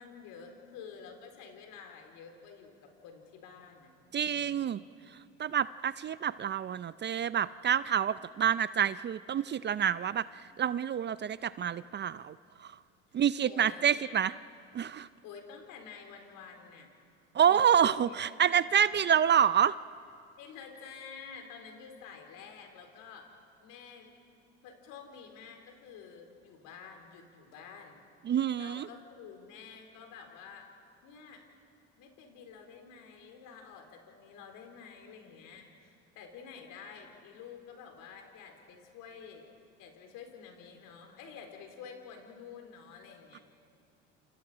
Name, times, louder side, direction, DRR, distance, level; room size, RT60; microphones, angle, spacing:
voice 1, 0.0-3.9 4.2-4.8 13.1-14.2 15.2-16.9 17.4-18.2 18.5-18.7 19.3-19.4 20.4-23.3 23.6-24.1 24.6-28.0 28.6-30.7 31.0-31.5 32.0-39.5 39.8-43.4, left 6 dB, 70° left, 4 dB, 4.0 m, -49 dB
voice 2, 4.1-4.8 5.4-12.3 12.6-12.7 13.1-14.3 14.7-15.1 17.3-19.7 28.2-28.9, right 9 dB, 30° right, 16 dB, 0.5 m, -27 dB
28.5 x 28.5 x 5.0 m, 2.4 s
hypercardioid pair, 80°, 34 cm